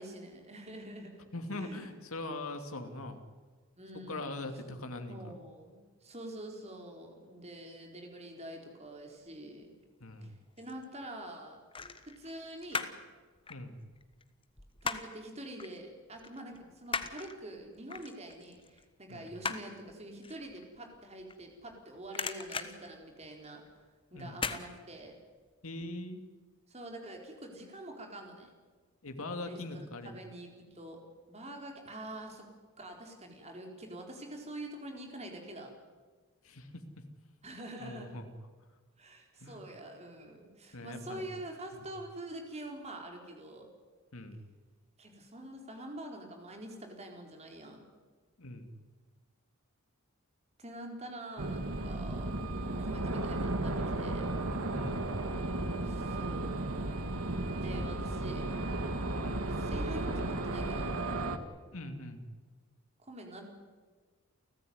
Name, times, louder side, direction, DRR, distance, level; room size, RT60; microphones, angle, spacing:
voice 1, 0.0-1.2 1.5-1.9 3.8-4.5 5.1-9.7 10.2-11.6 12.0-12.9 14.8-23.6 24.1-25.1 26.7-28.5 29.5-29.6 30.0-31.0 31.3-32.5 32.8-35.7 37.4-38.2 39.0-43.7 45.0-47.8 50.6-52.3 52.8-54.3 55.8-56.7 57.5-58.5 59.6-60.9 63.0-63.4, right 1 dB, 30° right, 2 dB, 4.2 m, -46 dB
voice 2, 1.3-3.2 4.1-5.4 10.0-10.4 13.5-13.8 19.1-19.3 24.1-24.4 25.6-26.2 29.0-30.2 36.4-36.8 37.8-38.3 39.4-39.6 40.7-41.2 44.1-44.4 48.4-48.7 54.7-55.1 59.2-59.5 61.7-62.2, left 2 dB, 70° left, 6 dB, 2.8 m, -41 dB
sound 1, 10.2-10.9 11.7-13.1 13.4-15.2 15.6-15.8 16.1-21.8 22.0-23.7 24.3-24.6 25.0-25.1, left 5 dB, 25° left, 1.3 m, -39 dB
sound 2, 51.4-61.4, right 2 dB, 75° right, 1.9 m, -34 dB
30.0 x 14.5 x 9.6 m, 1.5 s
head